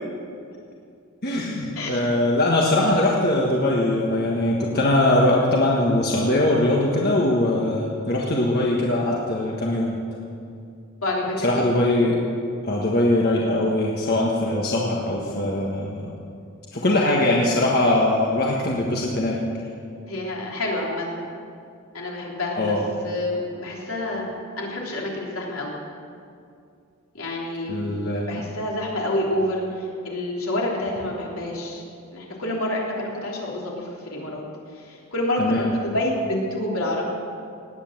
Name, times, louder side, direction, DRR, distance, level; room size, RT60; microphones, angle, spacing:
voice 1, 1.2-10.0 11.4-12.2 12.6-16.1 16.7-19.4 22.6-22.8 27.7-28.4 35.4-35.7, left 1 dB, 45° left, -3 dB, 1.5 m, -21 dB
voice 2, 11.0-11.7 20.1-21.2 21.9-22.8 23.0-25.8 27.1-31.8 32.1-37.0, left 1 dB, 75° left, -3 dB, 3.5 m, -28 dB
18.5 x 9.2 x 7.6 m, 2.4 s
head